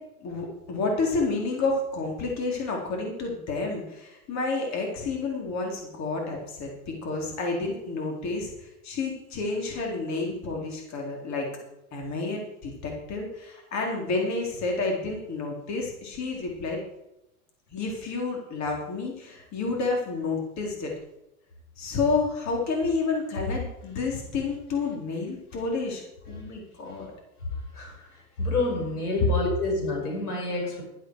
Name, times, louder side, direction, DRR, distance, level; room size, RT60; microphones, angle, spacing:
voice 1, 0.2-11.5 11.9-16.8 17.7-20.9 21.8-27.1 28.0-28.1 28.8-28.9, left 3 dB, 40° left, 0 dB, 3.9 m, -30 dB
voice 2, 28.4-30.8, left 2 dB, 85° left, 1 dB, 5.4 m, -28 dB
13.0 x 11.5 x 4.8 m, 0.89 s
hypercardioid pair, 95°, 44 cm